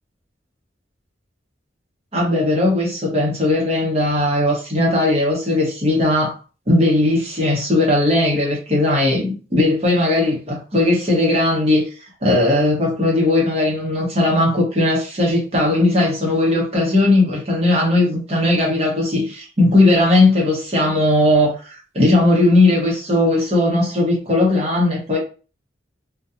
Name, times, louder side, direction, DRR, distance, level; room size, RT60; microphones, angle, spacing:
voice 1, 2.1-6.4 6.7-11.8 12.2-25.2, left 2 dB, 35° right, 0.8 m, -17 dB
2.6 x 2.2 x 2.4 m
head